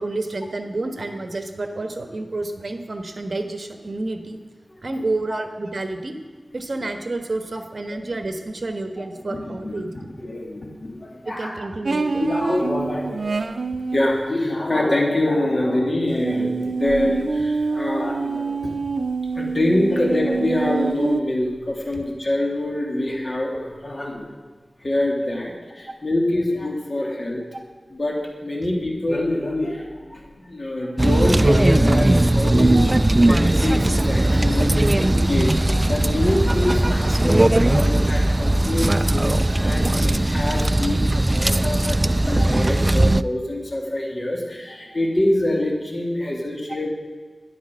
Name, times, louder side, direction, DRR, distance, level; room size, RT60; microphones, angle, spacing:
voice 1, 0.0-4.4 4.8-6.1 6.5-9.9 11.2-12.3 25.9-26.0 27.5-27.6 32.7-32.9 41.2-41.3 42.4-42.5 45.6-45.7, right 2 dB, 65° right, 6 dB, 1.3 m, -30 dB
voice 2, 9.0-9.7 10.2-11.5 12.2-13.5 13.9-18.7 19.4-24.3 24.8-27.4 27.9-30.2 30.5-46.9, left 1 dB, 50° left, 0 dB, 2.9 m, -25 dB
sound 1, 11.8-14.1 16.2-21.2, right 4 dB, 85° right, 0.6 m, -26 dB
sound 2, 31.0-43.2, right 1 dB, 30° right, 0.3 m, -18 dB
13.0 x 10.5 x 6.5 m, 1.4 s
wide cardioid pair, 55°, 0 cm